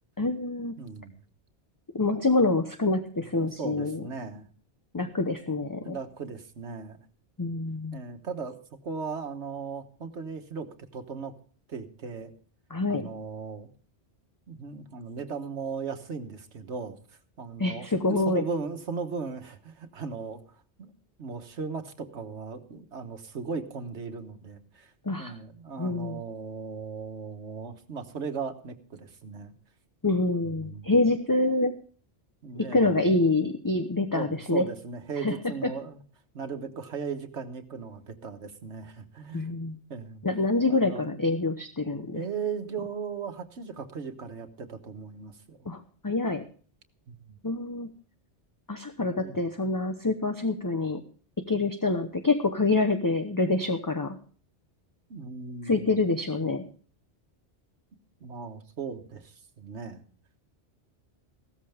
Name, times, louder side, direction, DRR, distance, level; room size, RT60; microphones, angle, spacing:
voice 1, 0.2-0.8 1.9-4.0 4.9-6.0 7.4-8.0 12.7-13.1 17.6-18.4 25.1-25.3 25.8-26.2 30.0-31.7 32.6-34.7 35.2-35.3 39.3-39.8 40.2-42.2 45.7-46.4 47.4-47.9 48.7-51.0 51.5-54.2 55.6-56.6, left 2 dB, 20° left, 7 dB, 0.8 m, -26 dB
voice 2, 0.8-1.2 3.3-4.5 5.8-7.0 7.9-8.6 8.8-10.7 10.9-11.3 11.7-12.3 12.9-13.7 14.5-16.9 17.4-20.4 20.8-20.9 21.2-24.9 25.2-29.5 30.4-30.9 32.4-32.9 34.1-36.0 36.3-39.5 39.9-40.2 40.7-41.2 42.1-45.6 47.1-47.4 49.2-49.4 55.1-56.0 58.2-60.0, right 5 dB, 80° right, 7 dB, 1.6 m, -37 dB
15.5 x 13.5 x 3.5 m, 0.42 s
omnidirectional pair, 1.2 m